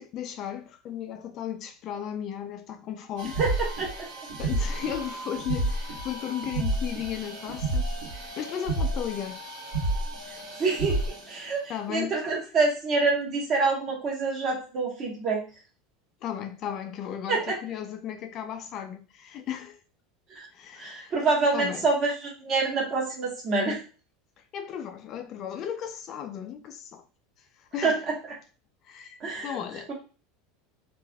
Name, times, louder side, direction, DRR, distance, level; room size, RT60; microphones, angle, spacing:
voice 1, 0.0-3.4 4.4-7.9 8.4-9.4 11.7-12.2 16.2-19.8 20.5-21.1 21.5-21.9 24.5-27.0 27.7-28.0 28.9-29.9, left 9 dB, 40° left, 0.4 m, -35 dB
sound 1, 3.2-11.4, right 2 dB, 75° right, 1.3 m, -31 dB
voice 2, 3.4-4.1 10.6-11.0 11.3-15.4 17.3-17.5 20.4-20.5 20.8-23.8 27.8-27.9 29.2-29.6, right 3 dB, 35° right, 1.2 m, -26 dB
3.3 x 2.5 x 2.3 m
supercardioid pair, 145°, 0 cm